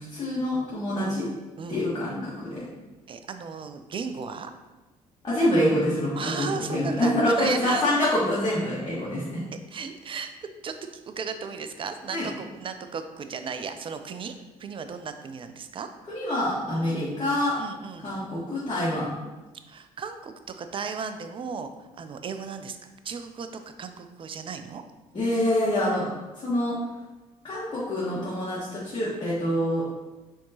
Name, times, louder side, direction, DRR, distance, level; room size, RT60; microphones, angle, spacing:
voice 1, 0.1-1.3 1.7-2.7 5.2-9.4 12.1-12.3 16.1-17.6 18.0-19.1 25.1-26.1 26.4-26.8 27.4-29.8, left 1 dB, 25° left, -9 dB, 1.4 m, -26 dB
voice 2, 3.1-4.5 6.2-7.1 7.4-7.8 9.7-14.3 14.6-15.9 16.7-16.9 17.6-18.1 18.9-19.0 19.7-21.7 22.0-22.8 23.0-24.8, right 6 dB, 30° right, 8 dB, 0.4 m, -35 dB
6.4 x 2.9 x 2.8 m, 1.2 s
figure-of-eight pair, 50°, 19 cm